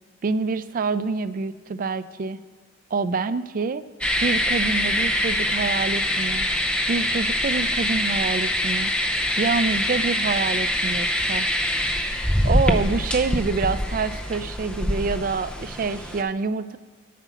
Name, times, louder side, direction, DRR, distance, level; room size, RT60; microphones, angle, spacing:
voice 1, 0.2-2.4 2.9-3.8 4.2-6.5 6.9-8.9 9.4-11.5 12.4-16.8, right 4 dB, 40° right, 13 dB, 0.3 m, -26 dB
sound 1, 4.0-16.2, left 1 dB, 5° left, 0.6 m, -24 dB
9.3 x 5.9 x 7.0 m, 1.5 s
head